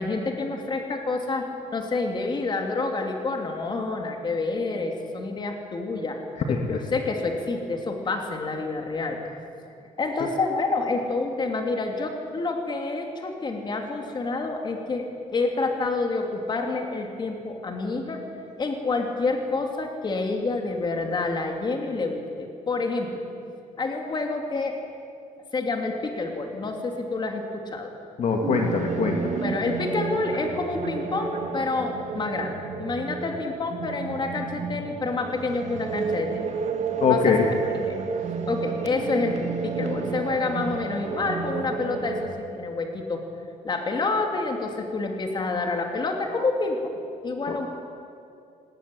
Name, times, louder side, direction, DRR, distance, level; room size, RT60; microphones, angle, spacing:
voice 1, 0.0-1.5 1.7-6.2 6.5-9.2 10.0-18.2 18.6-23.1 23.8-24.8 25.5-27.9 29.4-36.4 37.1-37.4 37.7-38.0 38.5-39.4 39.6-43.2 43.6-46.8 47.2-47.7, left 3 dB, 35° left, 3 dB, 2.8 m, -28 dB
voice 2, 6.5-6.8 28.2-29.4 37.0-37.5 47.5-47.6, left 5 dB, 55° left, 2 dB, 1.8 m, -23 dB
sound 1, 28.3-42.2, right 5 dB, 55° right, 1.7 m, -31 dB
19.0 x 18.0 x 9.2 m, 2.5 s
cardioid pair, 140°, 14 cm